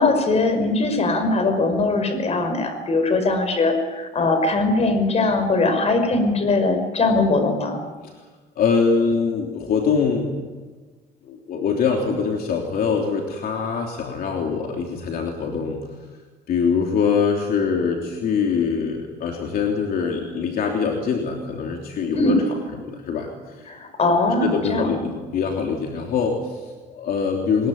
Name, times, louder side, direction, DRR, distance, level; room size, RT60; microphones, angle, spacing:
voice 1, 0.0-7.8 22.1-22.4 23.7-24.9, left 3 dB, 40° left, 7 dB, 5.4 m, -20 dB
voice 2, 8.6-10.4 11.2-15.8 16.5-22.4 22.7-23.7 24.4-27.7, left 5 dB, 60° left, 2 dB, 3.2 m, -23 dB
22.5 x 21.5 x 9.4 m, 1.3 s
cardioid pair, 110°, 17 cm